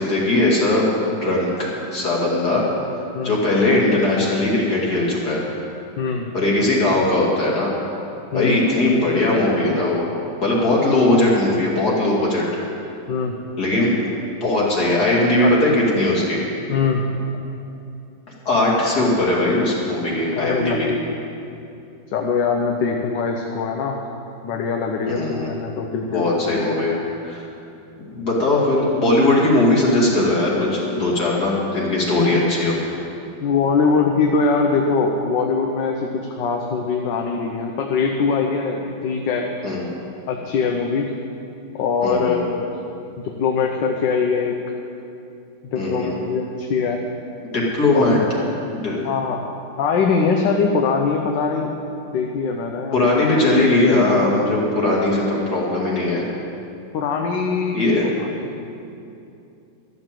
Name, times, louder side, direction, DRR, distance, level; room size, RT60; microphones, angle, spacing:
voice 1, 0.0-2.6 3.2-5.4 6.3-7.7 8.3-10.0 10.4-12.4 13.6-13.9 14.4-16.4 18.5-20.9 25.1-25.5 26.1-26.9 27.2-27.5 28.1-32.7 39.6-39.8 42.0-42.4 45.7-46.1 47.5-48.2 48.7-49.0 52.9-56.2 57.7-58.1, left 2 dB, 55° left, -4 dB, 2.9 m, -19 dB
voice 2, 6.0-6.3 8.3-8.6 13.1-13.4 15.4-15.5 16.7-17.0 20.3-21.1 22.1-24.0 24.4-26.7 32.2-32.3 33.4-39.5 40.3-41.1 41.7-42.7 43.2-44.6 45.7-47.0 47.9-48.1 49.0-49.4 49.8-51.7 52.1-53.3 56.9-58.7, left 5 dB, 75° left, 2 dB, 1.5 m, -22 dB
13.0 x 7.0 x 7.5 m, 2.7 s
omnidirectional pair, 2.0 m